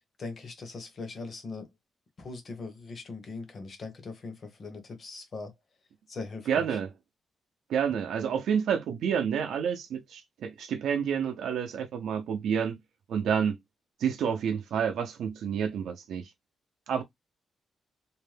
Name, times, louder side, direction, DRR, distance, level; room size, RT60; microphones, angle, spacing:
voice 1, 0.2-1.7 2.2-5.5 6.1-6.8, left 3 dB, 40° left, 0.8 m, -40 dB
voice 2, 6.5-6.9 7.7-12.8 13.1-13.6 14.0-16.3 16.9-17.0, right 7 dB, 80° right, 0.5 m, -29 dB
2.6 x 2.1 x 3.2 m
wide cardioid pair, 150°, 0 cm